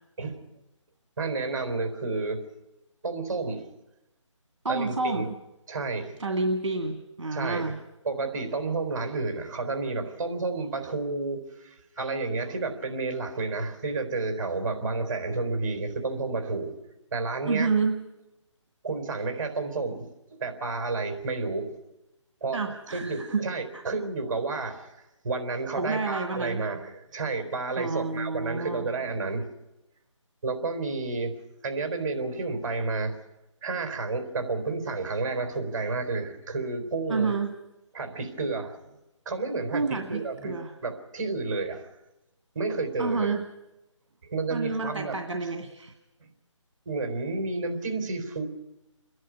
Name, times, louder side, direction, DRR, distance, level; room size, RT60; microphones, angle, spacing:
voice 1, 1.2-2.4 3.0-3.7 4.7-5.2 5.7-6.2 7.3-7.7 8.0-16.7 17.1-17.7 18.8-20.1 20.4-21.8 22.4-22.6 22.9-24.9 25.2-29.5 30.4-31.4 31.6-33.2 33.6-37.3 37.9-38.8 39.3-40.5 40.8-41.9 42.5-43.3 44.2-45.2 46.2-46.3 46.9-48.4, right 3 dB, 35° right, 5 dB, 3.9 m, -31 dB
voice 2, 4.6-5.3 6.2-7.8 17.5-18.0 22.5-23.8 25.8-26.7 27.8-28.9 37.1-37.5 39.7-40.7 43.0-43.5 44.5-45.9, right 3 dB, 65° right, 4 dB, 2.0 m, -29 dB
28.5 x 11.0 x 9.7 m, 0.95 s
figure-of-eight pair, 165°, 16 cm